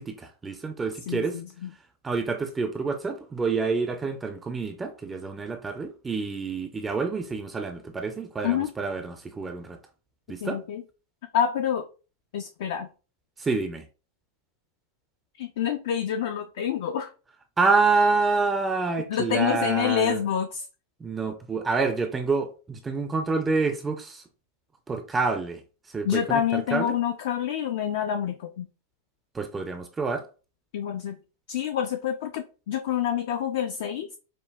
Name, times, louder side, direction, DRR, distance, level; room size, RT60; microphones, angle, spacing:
voice 1, 0.0-1.4 2.0-9.8 10.3-10.6 13.4-13.9 17.6-20.2 21.0-24.2 24.9-25.6 25.9-27.0 29.3-30.3, right 4 dB, 15° right, 0.4 m, -27 dB
voice 2, 1.1-1.7 8.4-8.7 10.4-10.8 11.3-11.9 12.3-12.9 15.4-17.1 19.1-20.6 26.0-28.7 30.7-31.2 31.5-34.2, left 9 dB, 55° left, 0.3 m, -27 dB
5.1 x 2.1 x 2.2 m
figure-of-eight pair, 90°, 0 cm